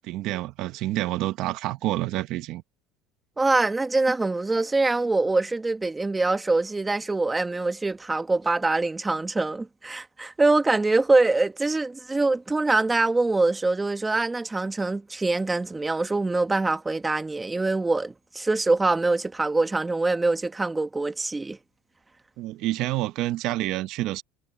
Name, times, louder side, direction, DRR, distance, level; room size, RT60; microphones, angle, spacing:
voice 1, 0.0-2.6 22.4-24.2, right 16 dB, 60° right, 1.1 m, -28 dB
voice 2, 3.4-21.6, right 3 dB, 15° right, 1.3 m, -24 dB
supercardioid pair, 120°, 0 cm